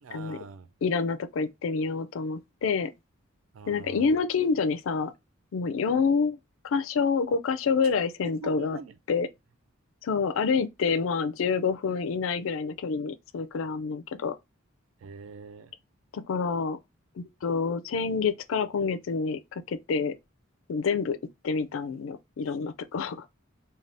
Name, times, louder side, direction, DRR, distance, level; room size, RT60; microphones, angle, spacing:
voice 1, 0.0-0.7 3.5-4.1 8.4-9.0 15.0-15.7, right 3 dB, 75° right, 0.4 m, -43 dB
voice 2, 0.8-2.9 3.7-5.1 5.5-6.4 6.6-8.8 9.1-9.3 10.0-14.3 16.1-16.8 17.2-20.1 20.7-21.2 21.4-23.3, left 5 dB, 75° left, 0.4 m, -27 dB
2.6 x 2.3 x 3.3 m
head